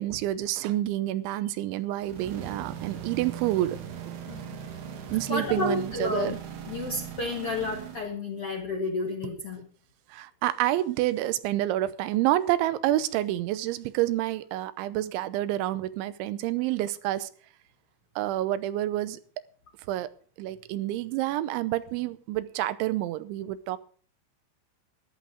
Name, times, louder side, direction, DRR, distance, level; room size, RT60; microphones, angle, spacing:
voice 1, 0.0-3.8 4.1-4.2 5.1-6.4 9.2-9.4 10.1-17.3 18.2-19.2 19.9-20.1 20.4-23.8, right 14 dB, 80° right, 3.1 m, -28 dB
sound 1, 2.0-8.1, right 8 dB, 65° right, 3.8 m, -39 dB
voice 2, 5.3-6.3 6.7-9.7, left 3 dB, 80° left, 1.3 m, -31 dB
14.0 x 11.0 x 5.0 m
omnidirectional pair, 5.4 m